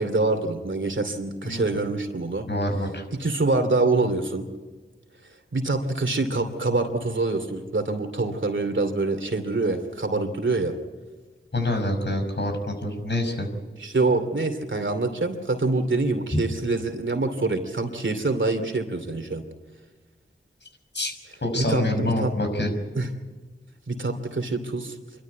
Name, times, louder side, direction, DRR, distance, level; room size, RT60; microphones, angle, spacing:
voice 1, 0.0-2.5 3.1-4.4 5.5-10.7 13.8-19.4 21.5-22.3 22.9-23.1 23.9-25.0, right 3 dB, 65° right, 7 dB, 2.7 m, -25 dB
voice 2, 2.5-3.0 11.5-13.5 20.9-21.1 21.4-22.7, left 1 dB, 55° left, 4 dB, 5.7 m, -26 dB
26.5 x 12.5 x 9.4 m, 1.3 s
wide cardioid pair, 50°, 21 cm